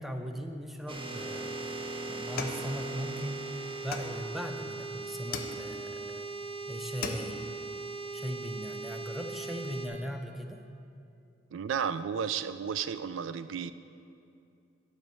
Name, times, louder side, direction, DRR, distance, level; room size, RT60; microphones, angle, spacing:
voice 1, 0.0-1.8 2.1-3.5 3.8-6.3 6.7-7.5 8.1-10.6, equal, ahead, 5 dB, 0.6 m, -39 dB
sound 1, 0.9-9.9, right 3 dB, 30° right, 0.9 m, -39 dB
sound 2, 2.4-3.3 3.9-4.6 5.3-6.0 6.5-6.6 6.8-7.6, left 4 dB, 50° left, 0.7 m, -39 dB
voice 2, 11.5-13.7, right 7 dB, 85° right, 13 dB, 0.4 m, -33 dB
11.0 x 5.2 x 6.9 m, 2.6 s
head